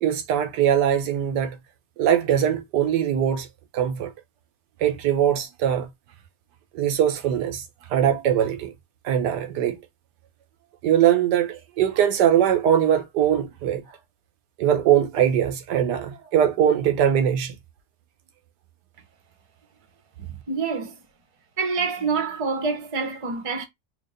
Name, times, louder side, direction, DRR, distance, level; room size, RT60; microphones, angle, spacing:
voice 1, 0.0-1.6 2.0-3.5 3.7-4.1 4.8-5.9 6.7-7.6 7.9-8.7 9.0-9.8 10.8-13.8 14.6-17.5, right 9 dB, 85° right, 1.4 m, -21 dB
voice 2, 20.5-20.9 21.6-23.6, right 4 dB, 30° right, 0.7 m, -26 dB
4.5 x 2.6 x 2.5 m
omnidirectional pair, 1.8 m